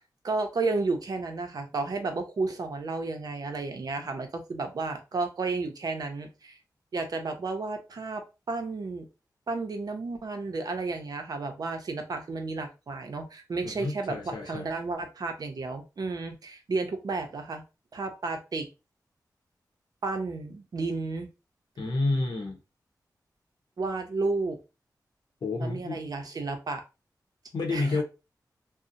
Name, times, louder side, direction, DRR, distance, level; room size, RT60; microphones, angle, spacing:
voice 1, 0.2-6.6 6.9-9.1 9.5-17.6 17.9-18.7 20.0-21.3 23.8-24.6 25.6-26.8 27.7-28.0, right 3 dB, 65° right, 0.6 m, -32 dB
voice 2, 13.6-14.7 21.8-22.6 25.4-26.0 27.5-28.0, left 2 dB, 85° left, 0.7 m, -29 dB
2.7 x 2.0 x 2.5 m
wide cardioid pair, 100°, 7 cm